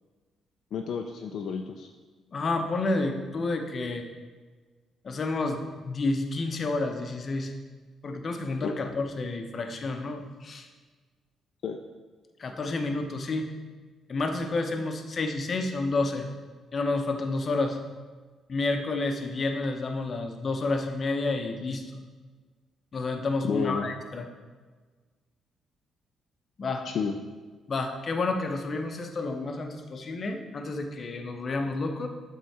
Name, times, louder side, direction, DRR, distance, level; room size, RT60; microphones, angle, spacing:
voice 1, 0.7-1.9 8.6-8.9 11.6-11.8 23.4-23.9 26.8-27.1, left 6 dB, 65° left, 3 dB, 0.4 m, -31 dB
voice 2, 2.3-4.0 5.0-7.5 8.0-10.7 12.4-13.5 14.1-16.3 16.7-17.8 18.5-22.0 22.9-24.3 26.6-26.9 27.7-32.1, left 3 dB, 40° left, 5 dB, 0.8 m, -30 dB
7.8 x 3.7 x 4.3 m, 1.4 s
cardioid pair, 90°, 0 cm